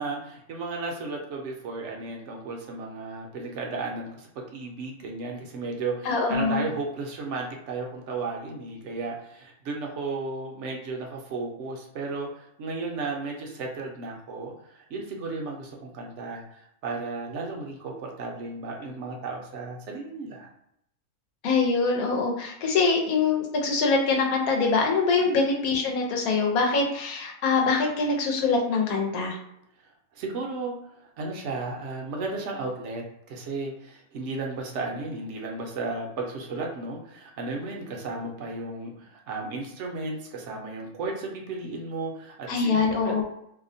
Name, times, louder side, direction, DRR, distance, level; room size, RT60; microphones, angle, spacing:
voice 1, 0.0-20.5 25.3-25.4 30.1-30.8 31.2-43.1, right 3 dB, 65° right, 1 dB, 0.8 m, -34 dB
voice 2, 6.0-6.6 21.4-29.4 42.5-43.2, left 4 dB, 90° left, 1 dB, 1.1 m, -24 dB
2.7 x 2.1 x 2.6 m, 0.75 s
omnidirectional pair, 1.5 m